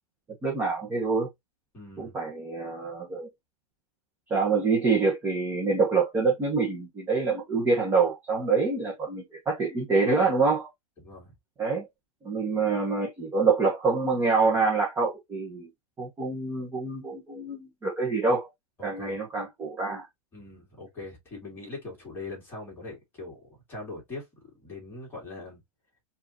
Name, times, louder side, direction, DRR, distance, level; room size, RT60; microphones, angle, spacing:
voice 1, 0.4-1.3 2.0-3.3 4.3-10.7 11.6-11.9 12.2-15.7 16.0-18.5 18.8-20.1, right 4 dB, 10° right, 1.1 m, -26 dB
voice 2, 1.7-2.2 11.0-11.3 18.8-19.2 20.3-24.2 24.6-25.6, left 2 dB, 10° left, 2.3 m, -41 dB
4.8 x 2.7 x 2.9 m
supercardioid pair, 165°, 19 cm